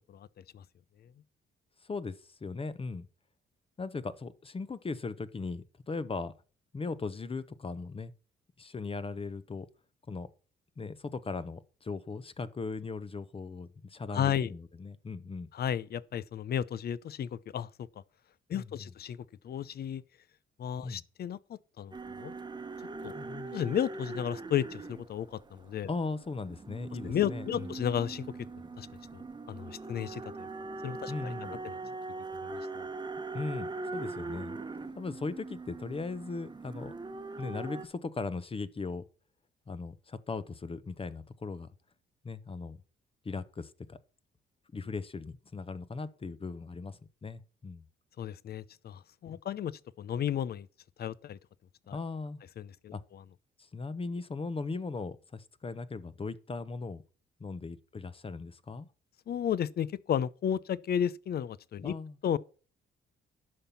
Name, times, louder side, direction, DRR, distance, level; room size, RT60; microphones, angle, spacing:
voice 1, 1.8-3.1 3.8-6.3 6.7-8.1 8.6-9.7 10.1-10.3 10.8-15.5 18.5-18.7 20.8-21.0 23.1-23.5 25.9-27.7 31.1-31.6 33.3-34.6 34.9-36.9 37.4-39.0 39.7-41.7 42.2-42.8 43.2-44.0 44.7-47.8 51.9-52.4 52.9-53.0 53.6-57.0 57.4-58.9 61.8-62.2, left 4 dB, 30° left, 0.9 m, -38 dB
voice 2, 14.1-14.5 15.5-17.7 18.5-19.2 19.4-20.0 20.6-22.3 23.0-23.1 23.5-25.9 27.0-28.2 28.8-28.9 29.1-29.2 29.5-30.5 30.8-31.3 31.6-31.8 32.3-32.9 48.2-50.7 51.0-51.4 51.9-52.0 52.6-52.9 59.3-61.9 62.2-62.4, left 9 dB, 55° left, 0.6 m, -33 dB
sound 1, 21.9-37.9, right 3 dB, 20° right, 1.1 m, -41 dB
11.0 x 5.8 x 7.0 m
cardioid pair, 90°, 20 cm